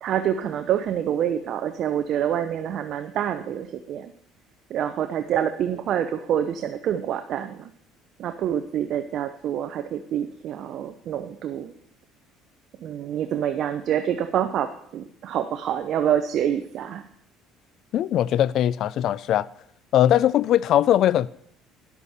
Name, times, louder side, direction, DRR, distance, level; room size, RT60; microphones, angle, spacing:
voice 1, 0.0-4.1 4.7-7.7 8.2-11.7 12.8-17.0, right 9 dB, 55° right, 0.6 m, -27 dB
voice 2, 17.9-19.5 19.9-21.3, left 11 dB, 55° left, 0.4 m, -20 dB
11.0 x 8.3 x 4.2 m
cardioid pair, 110°, 0 cm